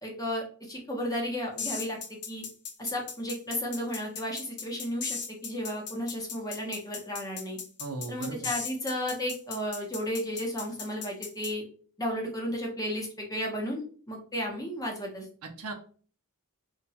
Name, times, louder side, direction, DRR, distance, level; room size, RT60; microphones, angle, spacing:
voice 1, 0.0-2.0 2.3-2.5 2.8-7.6 8.1-11.6 12.0-15.3, equal, 15° left, -1 dB, 0.7 m, -33 dB
sound 1, 1.6-11.5, left 6 dB, 80° left, 0.6 m, -37 dB
voice 2, 7.8-8.5 15.4-15.7, right 3 dB, 75° right, 5 dB, 0.5 m, -37 dB
2.8 x 2.2 x 2.7 m, 0.43 s
head